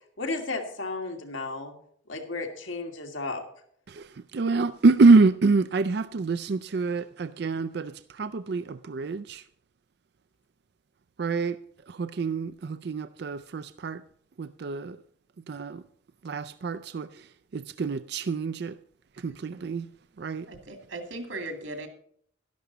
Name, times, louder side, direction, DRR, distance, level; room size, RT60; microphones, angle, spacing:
voice 1, 0.2-1.7 2.1-3.4, left 3 dB, 75° left, 2.3 m, -33 dB
voice 2, 3.9-9.4 11.2-11.6 11.9-14.0 14.4-15.0 15.5-15.8 16.2-18.8 19.2-19.9 20.2-20.5, right 3 dB, 55° right, 0.4 m, -25 dB
voice 3, 20.5-21.9, right 2 dB, 80° right, 2.4 m, -37 dB
12.0 x 11.5 x 4.0 m
head